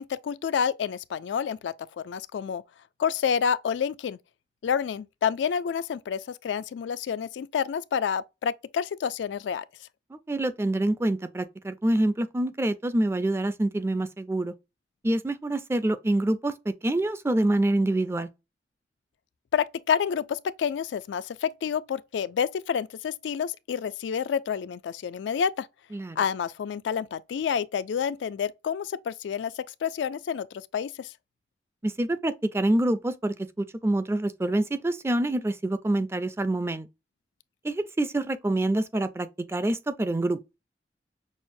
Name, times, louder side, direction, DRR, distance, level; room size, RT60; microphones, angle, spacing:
voice 1, 0.0-2.6 3.0-4.2 4.6-9.6 19.5-25.7 26.2-31.1, left 7 dB, 90° left, 0.3 m, -29 dB
voice 2, 10.1-14.5 15.0-18.3 25.9-26.2 31.8-36.9 37.6-40.4, right 1 dB, 15° right, 0.3 m, -26 dB
6.2 x 2.1 x 2.5 m
head